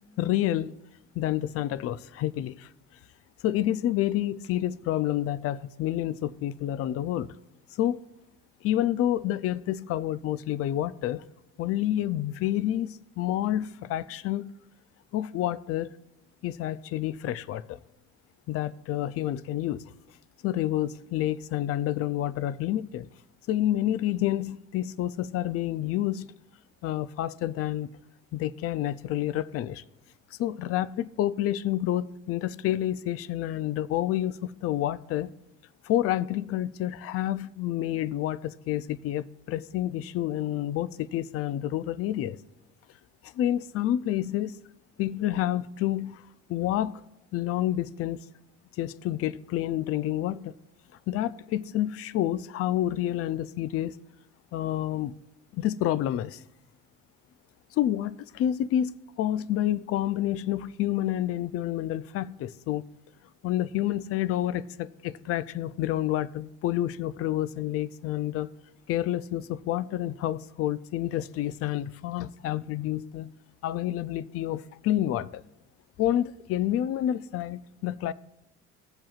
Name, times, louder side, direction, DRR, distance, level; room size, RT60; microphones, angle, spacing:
voice 1, 0.2-0.7 1.1-2.7 3.4-7.3 7.8-8.0 8.6-11.2 11.6-14.5 15.1-15.9 16.4-17.8 18.5-19.8 20.4-23.1 23.5-26.3 26.8-27.9 28.3-29.8 30.3-35.3 35.8-42.4 43.2-44.6 45.0-46.2 46.5-47.0 47.3-48.2 48.8-50.5 51.1-54.0 54.5-55.1 55.5-56.4 57.7-62.9 63.4-68.5 68.9-73.3 73.6-75.4 76.0-78.1, left 12 dB, 50° left, 0.4 m, -29 dB
17.0 x 7.5 x 2.4 m
cardioid pair, 120°, 29 cm